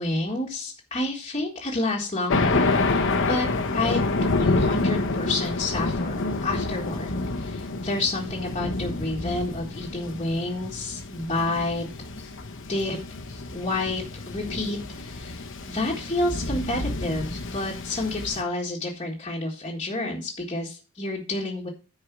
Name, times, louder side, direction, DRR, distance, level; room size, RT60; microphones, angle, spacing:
voice 1, 0.0-3.5 3.7-7.1 7.3-11.9 12.1-12.3 12.7-13.0 13.3-21.7, left 2 dB, 25° left, -4 dB, 1.6 m, -29 dB
Thunder, 2.3-18.4, left 3 dB, 60° left, 1.2 m, -28 dB
9.7 x 4.8 x 6.0 m, 0.33 s
head